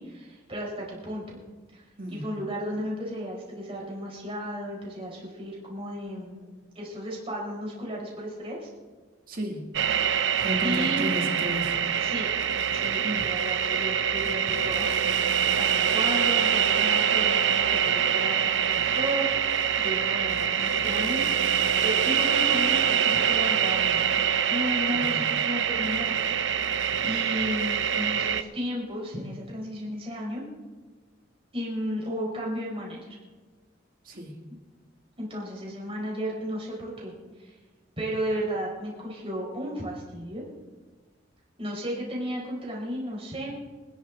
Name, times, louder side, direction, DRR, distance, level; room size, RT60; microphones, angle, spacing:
voice 1, 0.0-1.4 1.7-1.8 2.1-6.4 6.7-8.7 10.6-11.1 12.0-12.3 12.7-21.2 21.8-30.4 31.5-33.2 35.2-37.1 37.4-37.6 38.0-40.4 41.6-43.5, equal, 30° right, -3 dB, 4.7 m, -34 dB
voice 2, 2.0-2.3 9.3-9.7 10.4-11.7 13.0-13.3 24.9-25.2 34.0-34.4, equal, 50° right, 1 dB, 2.6 m, -33 dB
sound 1, 9.7-28.4, right 8 dB, 70° right, 0.7 m, -25 dB
26.0 x 11.0 x 3.9 m, 1.3 s
head